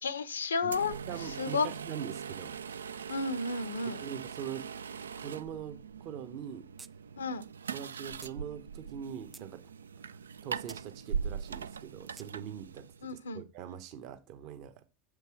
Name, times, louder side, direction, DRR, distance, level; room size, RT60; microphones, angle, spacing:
voice 1, 0.0-1.7 3.1-4.0 7.2-7.4 13.0-13.4, left 4 dB, 90° left, 0.7 m, -32 dB
sound 1, 0.6-13.2, right 6 dB, 85° right, 0.3 m, -41 dB
voice 2, 1.1-2.5 4.0-4.6 5.2-6.7 7.7-9.6 10.1-12.9 13.3-14.8, right 9 dB, 55° right, 1.2 m, -42 dB
sound 2, 6.8-6.9 7.2-7.3 8.2-8.4 9.0-9.5 10.7-10.8 12.2-12.3, right 4 dB, 15° right, 0.4 m, -50 dB
7.4 x 5.3 x 4.9 m
hypercardioid pair, 85°, 0 cm